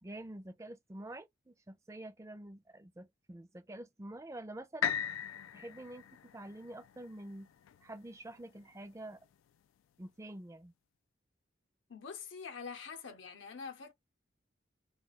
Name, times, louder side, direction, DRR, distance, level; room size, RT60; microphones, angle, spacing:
voice 1, 0.0-4.9 5.5-6.0 6.3-7.5 7.8-9.2 10.0-10.7, right 1 dB, 15° right, 0.4 m, -47 dB
sound 1, 4.8-8.8 9.3-9.4, left 9 dB, 85° left, 0.3 m, -39 dB
voice 2, 11.9-13.9, left 5 dB, 70° left, 0.7 m, -45 dB
2.4 x 2.3 x 3.9 m
head